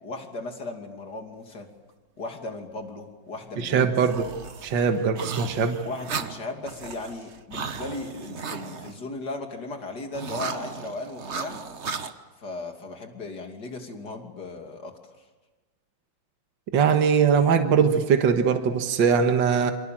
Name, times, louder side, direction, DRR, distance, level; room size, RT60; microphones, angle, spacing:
voice 1, 0.0-1.7 2.2-3.9 5.8-11.6 12.4-15.0, left 2 dB, 50° left, 4 dB, 3.4 m, -36 dB
voice 2, 3.6-4.3 4.6-5.8 16.7-19.7, right 6 dB, 60° right, 6 dB, 2.1 m, -21 dB
sound 1, 4.1-9.0 10.1-12.1, right 5 dB, 40° right, 1.2 m, -35 dB
28.0 x 25.5 x 7.7 m, 1.2 s
omnidirectional pair, 2.3 m